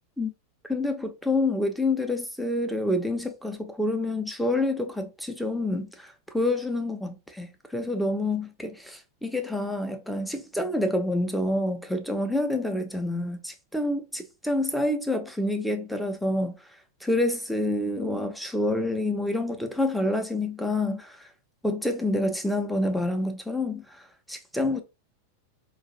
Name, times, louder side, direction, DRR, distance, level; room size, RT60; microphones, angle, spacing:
voice 1, 0.7-16.6 17.0-21.3 21.6-24.8, left 1 dB, ahead, 0.7 m, -28 dB
4.7 x 2.5 x 2.8 m
figure-of-eight pair, 90°, 0 cm